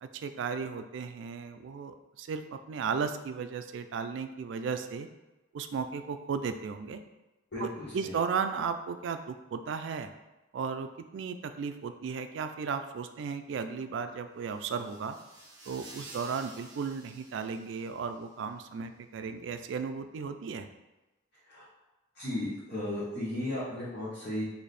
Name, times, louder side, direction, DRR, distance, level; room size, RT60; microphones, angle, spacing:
voice 1, 0.0-5.1 5.5-7.0 7.6-10.1 10.5-15.2 15.7-20.7, right 5 dB, 75° right, 9 dB, 0.3 m, -35 dB
voice 2, 7.5-8.1 21.5-21.6 22.1-24.4, left 1 dB, 55° left, -10 dB, 0.9 m, -35 dB
sound 1, 14.4-18.3, right 2 dB, 20° right, 1.0 m, -51 dB
4.1 x 2.7 x 3.3 m, 1.1 s
head